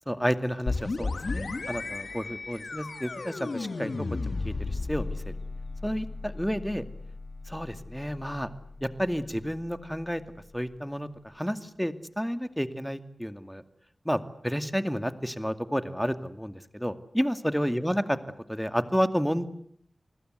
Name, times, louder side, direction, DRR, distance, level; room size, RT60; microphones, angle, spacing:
voice 1, 0.1-5.2 5.8-6.8 7.5-8.5 8.8-10.2 10.5-13.6 14.0-18.2 18.5-19.5, equal, ahead, 10 dB, 2.3 m, -31 dB
sound 1, 0.7-10.2, left 3 dB, 75° left, 2.2 m, -35 dB
29.5 x 20.5 x 8.1 m, 0.65 s
cardioid pair, 45°, 0 cm